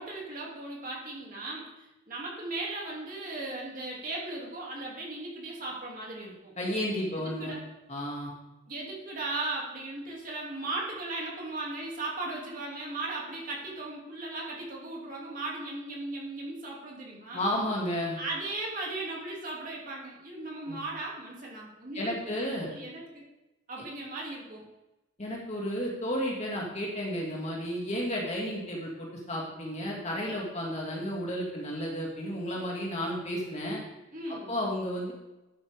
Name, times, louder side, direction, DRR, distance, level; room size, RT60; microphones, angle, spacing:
voice 1, 0.0-6.5 7.2-7.6 8.7-17.4 18.1-23.2 23.7-24.6 34.1-34.5, right 2 dB, 40° right, -3 dB, 2.7 m, -37 dB
voice 2, 6.6-7.5 7.9-8.3 17.3-18.2 20.7-20.8 21.9-22.7 25.2-33.8 34.5-35.1, equal, 35° left, -3 dB, 2.2 m, -32 dB
11.5 x 8.9 x 3.6 m, 0.99 s
head